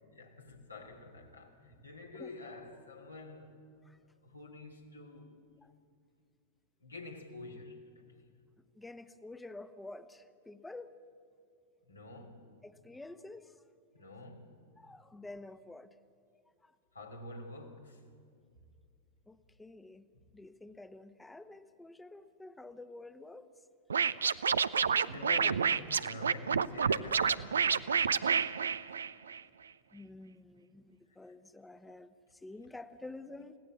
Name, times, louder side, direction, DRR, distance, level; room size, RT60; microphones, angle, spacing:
voice 1, 0.1-3.6 4.2-5.4 6.8-8.3 11.9-12.5 13.9-14.6 16.9-18.0 20.1-20.2 25.1-28.3, left 2 dB, 80° left, 3.1 m, -48 dB
voice 2, 8.7-10.9 12.6-13.6 14.8-16.0 16.6-16.7 19.3-20.1 20.3-23.5 25.0-25.5 29.9-33.6, left 2 dB, 5° left, 1.1 m, -49 dB
Scratching (performance technique), 23.9-29.4, right 6 dB, 70° right, 0.6 m, -29 dB
30.0 x 17.0 x 8.4 m
figure-of-eight pair, 90°, 0 cm